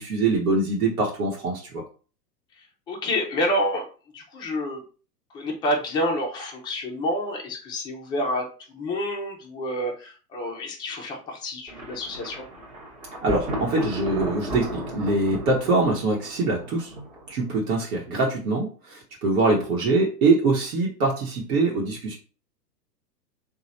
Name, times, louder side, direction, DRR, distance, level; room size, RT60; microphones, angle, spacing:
voice 1, 0.0-1.8 13.2-16.9 17.3-22.1, right 3 dB, 55° right, -2 dB, 1.1 m, -23 dB
voice 2, 2.9-3.9 4.1-4.8 5.3-8.5 8.7-12.4 19.4-19.6, left 1 dB, 10° left, -1 dB, 0.4 m, -28 dB
Thunder, 11.7-17.5, equal, 15° right, 1.0 m, -35 dB
3.1 x 2.3 x 4.0 m, 0.38 s
hypercardioid pair, 115°, 50 cm